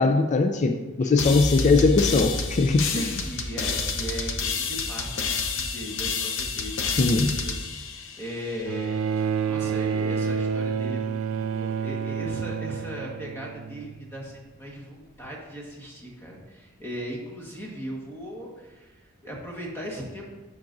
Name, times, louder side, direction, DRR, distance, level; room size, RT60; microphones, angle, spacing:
voice 1, 0.0-3.1 7.0-7.4, left 3 dB, 35° left, 6 dB, 0.3 m, -21 dB
voice 2, 1.0-1.7 2.7-6.9 7.2-20.3, equal, 10° left, -3 dB, 1.4 m, -38 dB
sound 1, 1.2-8.7, left 4 dB, 60° left, 0.7 m, -29 dB
Bowed string instrument, 8.7-14.1 15.2-15.3, right 6 dB, 65° right, 0.3 m, -29 dB
10.5 x 5.9 x 2.6 m, 1.1 s
head